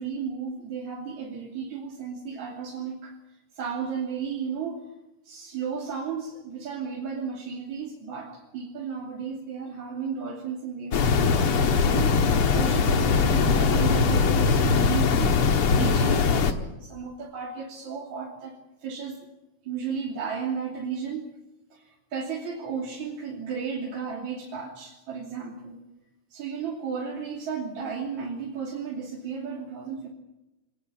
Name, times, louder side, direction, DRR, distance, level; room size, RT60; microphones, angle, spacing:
voice 1, 0.0-4.9 5.2-15.4 15.7-19.2 19.6-21.3 21.7-25.8 26.3-30.1, right 6 dB, 75° right, -1 dB, 4.3 m, -34 dB
sound 1, 10.9-16.5, left 5 dB, 55° left, 2.2 m, -21 dB
25.0 x 19.5 x 8.6 m, 1.0 s
omnidirectional pair, 3.3 m